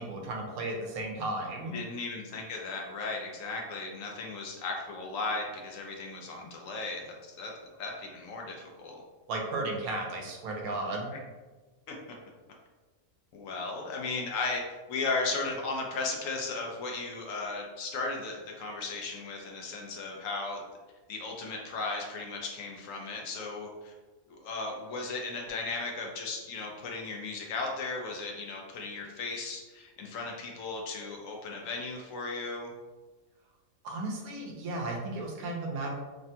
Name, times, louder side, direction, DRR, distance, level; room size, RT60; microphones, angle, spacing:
voice 1, 0.0-1.7 9.3-11.1 33.8-35.9, right 2 dB, 85° right, 1 dB, 1.1 m, -34 dB
voice 2, 1.7-7.5 7.8-9.0 11.1-11.2 13.3-14.6 14.9-20.6 21.1-23.9 24.3-32.7, left 3 dB, 70° left, 0 dB, 0.9 m, -36 dB
3.3 x 2.2 x 2.7 m, 1.2 s
omnidirectional pair, 1.5 m